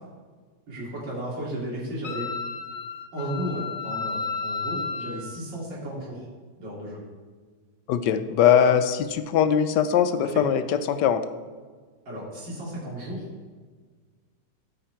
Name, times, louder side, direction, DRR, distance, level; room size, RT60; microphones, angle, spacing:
voice 1, 0.7-2.3 3.1-6.3 6.6-7.0 10.3-10.4 12.1-13.3, right 1 dB, 80° right, -5 dB, 3.2 m, -34 dB
Wind instrument woodwind instrument, 2.0-5.3, left 4 dB, 60° left, 0.7 m, -32 dB
voice 2, 7.9-10.6 10.9-11.2, left 8 dB, 75° left, 10 dB, 1.2 m, -21 dB
12.5 x 5.8 x 4.6 m, 1.5 s
omnidirectional pair, 2.0 m